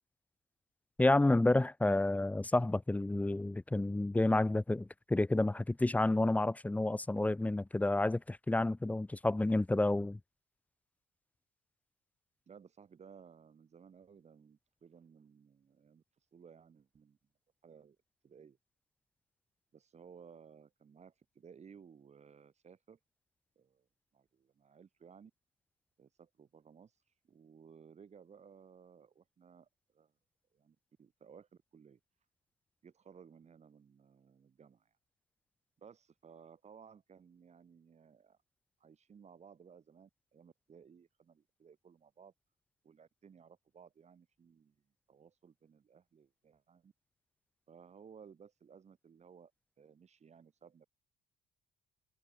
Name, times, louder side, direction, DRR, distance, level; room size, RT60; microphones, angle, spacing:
voice 1, 1.0-10.2, left 2 dB, 10° left, 0.5 m, -30 dB
voice 2, 12.5-16.0 16.3-17.2 17.6-18.0 18.2-18.6 19.7-23.0 23.6-23.8 24.1-25.3 26.0-26.9 27.2-30.1 30.5-32.0 32.8-34.9 35.8-38.4 38.8-42.3 42.8-44.7 45.1-46.9 47.7-49.5 49.8-50.9, right 6 dB, 35° right, 4.3 m, -58 dB
cardioid pair, 120°, 19 cm